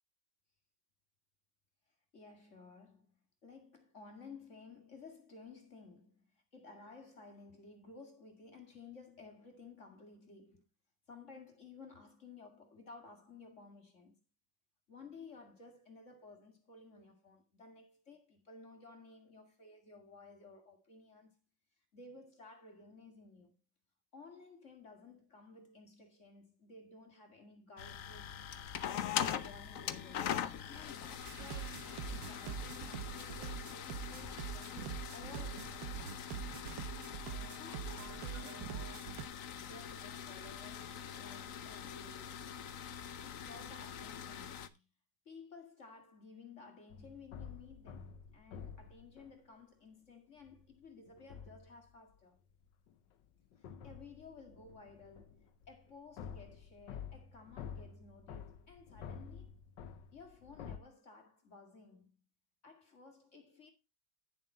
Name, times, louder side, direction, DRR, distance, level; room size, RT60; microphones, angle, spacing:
voice 1, 2.1-3.1 3.4-10.7 11.1-14.2 14.9-21.4 21.9-23.5 24.1-28.5 28.8-30.5 30.7-36.3 37.6-39.2 39.5-42.4 43.2-44.8 45.3-52.4 53.6-59.6 60.1-62.1 62.6-63.7, left 4 dB, 40° left, 2.2 m, -55 dB
sound 1, 27.8-44.7, left 9 dB, 55° left, 1.0 m, -43 dB
sound 2, 31.2-39.3, right 9 dB, 75° right, 1.5 m, -44 dB
sound 3, 46.9-49.3 50.4-50.6 51.1-51.8 52.6-60.8, left 7 dB, 75° left, 1.6 m, -50 dB
11.0 x 7.3 x 4.2 m
omnidirectional pair, 2.0 m